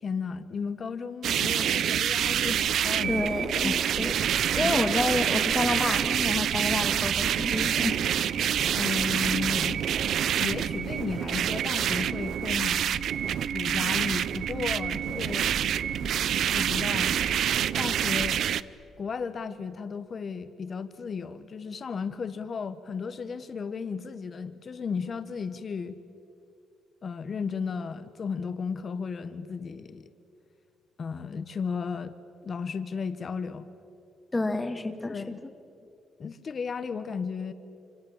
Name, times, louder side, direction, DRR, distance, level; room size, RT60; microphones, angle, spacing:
voice 1, 0.0-3.1 3.6-3.8 4.6-4.8 8.7-9.8 10.4-13.1 13.5-15.5 16.5-17.2 17.8-18.4 19.0-26.0 27.0-30.1 31.0-32.1 32.4-33.7 35.1-35.4 36.2-37.5, left 5 dB, 45° left, 11 dB, 1.2 m, -34 dB
sound 1, 1.2-18.6, right 10 dB, 70° right, 0.6 m, -27 dB
sound 2, 2.2-18.4, right 1 dB, 15° right, 1.9 m, -41 dB
voice 2, 3.1-4.1 4.6-8.0 34.3-35.2, left 2 dB, 20° left, 7 dB, 1.9 m, -29 dB
26.5 x 26.0 x 7.4 m, 2.6 s
cardioid pair, 90°, 0 cm